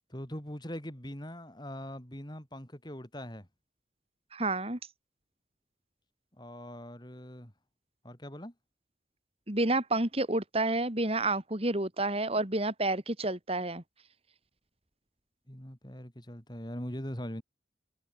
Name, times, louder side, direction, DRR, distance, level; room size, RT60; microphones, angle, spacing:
voice 1, 0.1-3.5 6.4-7.5 8.0-8.5 15.5-17.4, equal, 25° left, 5.3 m, -41 dB
voice 2, 4.3-4.8 9.5-13.8, right 2 dB, 35° right, 2.8 m, -29 dB
head